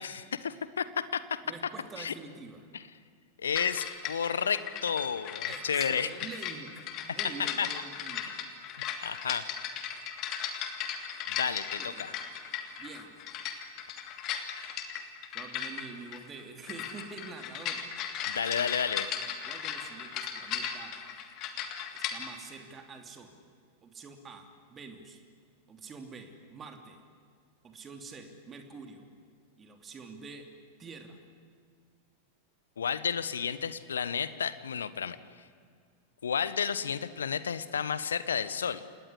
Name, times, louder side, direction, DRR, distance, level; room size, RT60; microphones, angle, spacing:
voice 1, 0.0-1.4 2.0-2.1 2.7-2.8 3.4-6.1 7.4-7.7 8.3-8.4 9.0-9.5 11.3-12.1 18.3-19.1 32.8-35.2 36.2-38.8, left 7 dB, 70° left, 15 dB, 1.3 m, -31 dB
voice 2, 1.4-2.7 5.4-8.4 11.8-12.2 12.8-13.2 15.3-17.8 19.5-21.0 21.9-23.4 23.8-25.2 25.7-27.0 27.6-29.1 29.6-30.4 30.8-31.2, right 4 dB, 20° right, 5 dB, 2.9 m, -46 dB
sound 1, 3.6-22.3, left 8 dB, 40° left, 2.9 m, -37 dB
28.0 x 19.5 x 10.0 m, 2.1 s
figure-of-eight pair, 90°, 0 cm